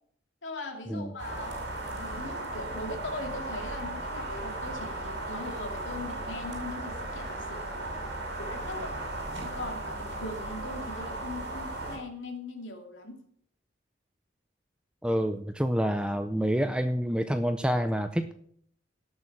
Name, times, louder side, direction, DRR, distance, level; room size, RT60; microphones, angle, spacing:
voice 1, 0.4-1.6 1.9-8.1 8.4-9.0 9.4-13.2, left 2 dB, 75° left, 2 dB, 2.6 m, -40 dB
sound 1, 1.2-12.0, right 2 dB, 60° right, 6.0 m, -36 dB
voice 2, 15.0-18.3, equal, 5° right, 8 dB, 0.5 m, -28 dB
17.5 x 7.0 x 6.0 m, 0.64 s
head